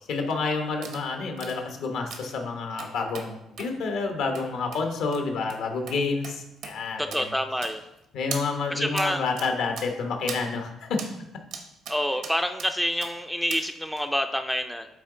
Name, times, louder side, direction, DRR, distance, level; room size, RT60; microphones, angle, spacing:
voice 1, 0.1-7.3 8.1-11.0, left 4 dB, 75° left, 3 dB, 1.0 m, -29 dB
sound 1, 0.8-1.0 1.4-1.6 2.1-2.3 2.8-3.3 3.6-3.7 4.3-4.5 4.7-4.8 5.1-5.2 5.5-5.6 5.9-6.0 6.2-6.4 6.6-6.7 7.1-7.2 7.6-8.0 8.3-8.4 9.0-9.1 9.4-9.5 9.8-9.9 10.3-10.4 11.0-11.1 11.5-12.0 12.2-12.7 13.0-13.1 13.5-13.6 14.0-14.1, right 6 dB, 75° right, 0.9 m, -38 dB
voice 2, 7.0-7.8 8.7-9.2 11.9-14.9, equal, ahead, 6 dB, 0.4 m, -27 dB
8.6 x 3.0 x 3.8 m, 0.85 s
cardioid pair, 105°, 0 cm